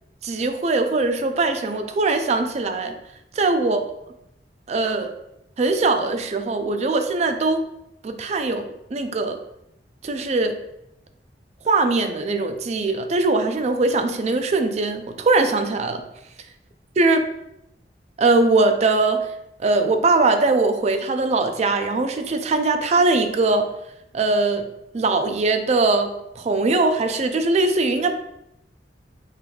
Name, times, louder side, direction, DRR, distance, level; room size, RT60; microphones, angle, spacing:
voice 1, 0.2-2.9 3.4-3.8 4.7-5.1 5.6-7.6 8.0-9.4 10.0-10.6 11.6-16.0 17.0-17.3 18.2-19.3 19.6-23.7 24.1-24.7 24.9-28.1, right 3 dB, 40° right, 7 dB, 0.4 m, -21 dB
4.5 x 3.4 x 2.3 m, 0.82 s
head